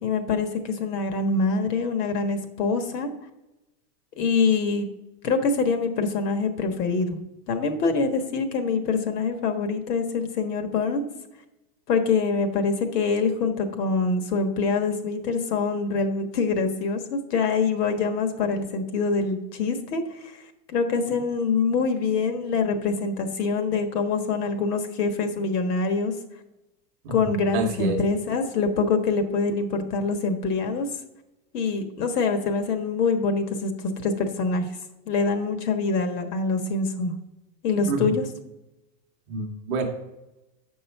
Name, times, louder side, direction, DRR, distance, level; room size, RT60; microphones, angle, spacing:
voice 1, 0.0-3.1 4.2-4.9 5.2-7.2 7.5-11.0 11.9-20.3 20.7-26.1 27.1-30.9 31.5-34.7 35.1-37.1 37.6-38.2, left 4 dB, 85° left, 7 dB, 1.5 m, -25 dB
voice 2, 27.0-28.0 37.9-38.1 39.3-39.8, right 3 dB, 20° right, 2 dB, 0.6 m, -28 dB
7.8 x 5.5 x 5.5 m, 0.98 s
supercardioid pair, 180°, 46 cm